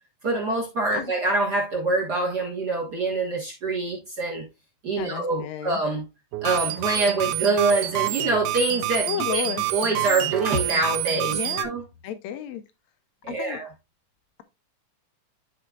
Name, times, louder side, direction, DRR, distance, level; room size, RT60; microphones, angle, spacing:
voice 1, 0.2-4.4 4.8-6.0 6.4-9.4 9.7-11.8 13.2-13.7, right 2 dB, 45° right, 1.3 m, -25 dB
voice 2, 4.9-5.8 9.0-9.7 11.3-11.7 12.0-12.6 13.4-13.6, left 9 dB, 75° left, 1.6 m, -32 dB
sound 1, 6.3-11.6, right 15 dB, 80° right, 2.0 m, -27 dB
12.0 x 4.3 x 2.4 m
omnidirectional pair, 3.8 m